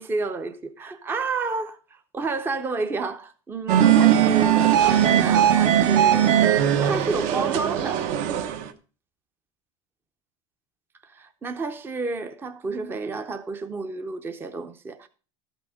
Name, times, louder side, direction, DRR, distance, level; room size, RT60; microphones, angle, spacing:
voice 1, 0.0-1.8 2.1-6.4 6.8-8.1 11.1-15.1, right 3 dB, 15° right, 0.6 m, -30 dB
sound 1, 3.7-8.7, right 10 dB, 50° right, 1.0 m, -19 dB
12.5 x 6.0 x 4.8 m
supercardioid pair, 145°, 16 cm